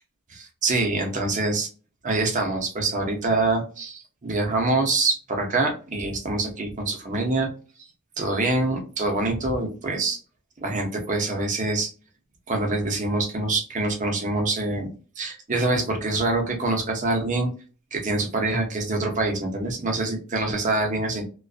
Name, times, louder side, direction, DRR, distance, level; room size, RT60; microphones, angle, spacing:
voice 1, 0.3-1.7 2.0-7.5 8.2-10.2 10.6-11.9 12.5-14.9 15.2-17.5 17.9-21.2, right 2 dB, 35° right, 2 dB, 0.6 m, -25 dB
2.5 x 2.3 x 2.4 m, 0.36 s
head